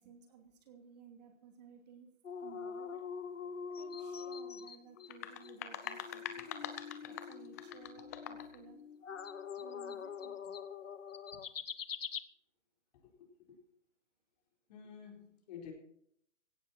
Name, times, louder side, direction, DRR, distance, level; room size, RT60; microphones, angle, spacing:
voice 1, 0.0-2.1 2.4-3.1 3.7-6.5 7.0-8.8 9.6-10.5 11.3-11.4, right 7 dB, 35° right, 2.8 m, -57 dB
sound 1, 2.2-5.1 5.4-5.5 5.8-5.9 9.0-12.2, left 6 dB, 80° left, 1.2 m, -43 dB
sound 2, 4.8-10.5, left 7 dB, 55° left, 3.2 m, -52 dB
sound 3, 5.0-8.6, left 10 dB, 15° left, 0.7 m, -44 dB
voice 2, 12.9-13.6 14.7-15.7, left 8 dB, 35° left, 4.3 m, -51 dB
17.0 x 13.5 x 4.3 m
hypercardioid pair, 155°, 37 cm